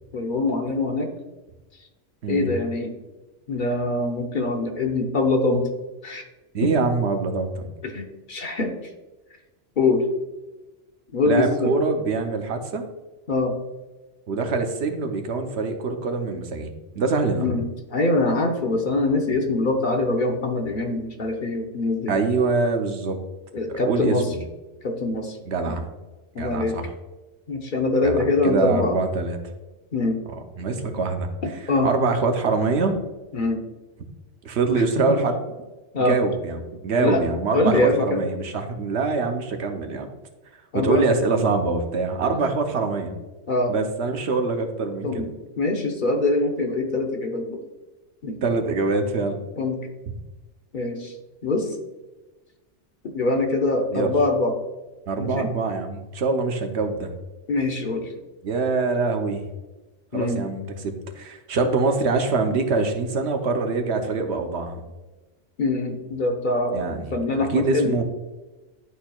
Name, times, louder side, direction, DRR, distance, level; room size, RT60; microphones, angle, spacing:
voice 1, 0.1-1.1 2.3-2.9 3.5-5.7 6.0-6.2 6.6-6.7 7.8-8.7 9.8-10.1 11.1-11.7 13.3-13.5 17.4-17.6 17.9-22.2 23.5-24.3 24.8-25.4 25.7-25.8 26.3-26.8 27.5-29.0 29.9-30.2 31.4-31.9 33.3-33.6 34.7-35.2 35.9-36.2 37.0-37.2 37.5-38.3 40.7-41.0 43.5-43.7 45.0-45.3 45.6-47.6 48.2-48.4 49.6-49.8 50.7-51.2 51.4-51.8 53.0-54.6 55.2-55.5 57.5-58.1 60.1-60.4 65.6-68.0, left 2 dB, 50° left, 3 dB, 0.8 m, -23 dB
voice 2, 6.5-7.7 11.2-12.8 14.3-17.4 22.1-23.2 23.7-24.4 25.5-25.9 26.4-26.9 28.0-29.4 30.6-31.3 31.8-33.0 34.4-35.4 36.0-40.1 40.8-43.2 43.7-45.2 48.4-49.4 50.1-50.2 53.9-54.1 55.1-57.1 58.4-59.4 60.1-64.8 66.7-68.0, right 3 dB, 70° right, 5 dB, 1.0 m, -24 dB
11.0 x 4.3 x 2.3 m, 1.1 s
omnidirectional pair, 1.2 m